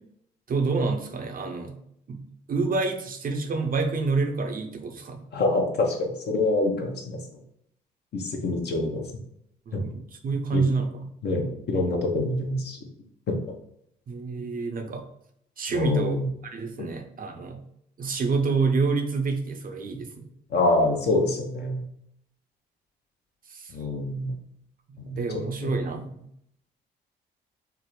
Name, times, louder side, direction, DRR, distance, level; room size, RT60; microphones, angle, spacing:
voice 1, 0.5-1.8 2.1-2.2 2.5-5.2 9.7-11.1 14.1-15.0 15.6-17.6 18.0-20.3 23.5-23.7 24.9-26.1, right 4 dB, 45° right, 5 dB, 0.6 m, -28 dB
voice 2, 5.3-7.2 8.1-9.0 9.7-9.8 10.5-10.6 11.2-12.8 13.3-13.4 15.7-16.3 19.9-20.0 20.5-21.8 23.7-24.3 25.0-25.2 25.6-25.7, left 2 dB, 55° left, 3 dB, 0.8 m, -26 dB
3.4 x 2.0 x 3.1 m, 0.72 s
hypercardioid pair, 50°, 21 cm